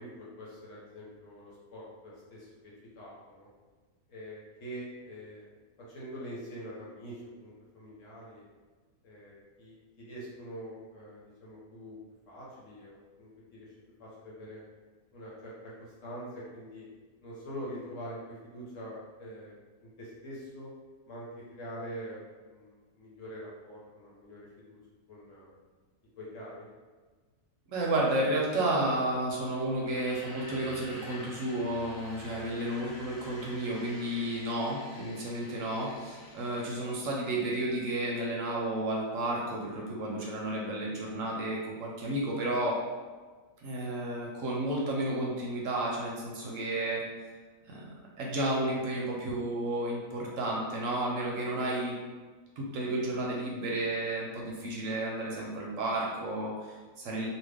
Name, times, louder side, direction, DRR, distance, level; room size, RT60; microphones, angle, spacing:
voice 1, 0.0-3.5 4.1-5.5 5.9-8.4 9.0-12.0 12.3-13.7 14.0-14.6 15.1-16.9 17.2-20.7 21.1-24.8 25.1-25.5 26.2-26.7 32.3-32.5 46.4-46.5, equal, 65° left, -6 dB, 1.2 m, -45 dB
voice 2, 27.7-42.8 43.6-47.0 47.7-47.8 48.2-51.9 52.6-57.3, right 1 dB, 70° right, -3 dB, 0.9 m, -32 dB
sound 1, 29.8-37.0, left 1 dB, 85° left, 1.2 m, -48 dB
2.7 x 2.4 x 3.4 m, 1.4 s
omnidirectional pair, 1.5 m